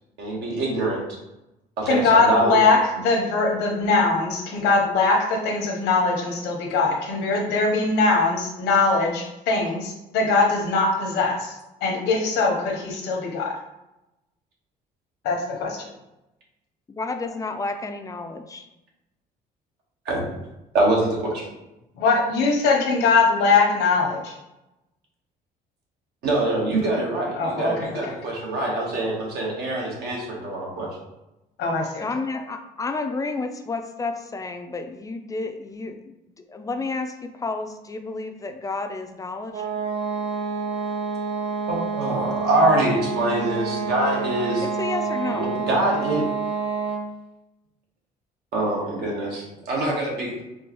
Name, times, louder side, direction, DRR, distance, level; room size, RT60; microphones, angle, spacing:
voice 1, 0.2-1.0 1.8-2.6 20.0-20.3 20.7-21.4 26.2-31.0 41.7-44.7 45.3-46.2 48.5-49.4 49.7-50.4, right 1 dB, 75° right, -2 dB, 1.2 m, -24 dB
voice 2, 1.9-11.5 11.8-13.5 15.2-15.9 22.0-24.3 27.4-28.0 31.6-32.1, left 3 dB, 90° left, 0 dB, 0.9 m, -21 dB
voice 3, 16.9-18.7 32.0-39.7 44.6-45.6, left 3 dB, 20° left, 6 dB, 0.3 m, -31 dB
sound 1, 39.5-47.2, right 5 dB, 35° right, 0.5 m, -28 dB
4.4 x 2.2 x 3.0 m, 0.94 s
cardioid pair, 110°, 17 cm